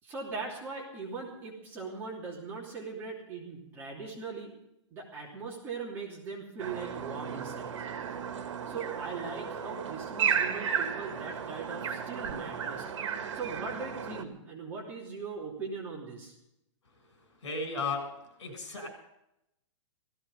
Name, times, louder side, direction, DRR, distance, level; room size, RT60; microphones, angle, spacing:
voice 1, 0.0-4.5 4.9-7.7 8.6-12.9 13.3-16.3, right 4 dB, 15° right, -4 dB, 3.0 m, -40 dB
sound 1, 6.6-14.2, right 7 dB, 65° right, 2.1 m, -34 dB
voice 2, 17.4-18.0 18.4-18.9, left 4 dB, 65° left, 5 dB, 7.4 m, -34 dB
17.5 x 15.5 x 5.4 m, 0.82 s
hypercardioid pair, 175°, 16 cm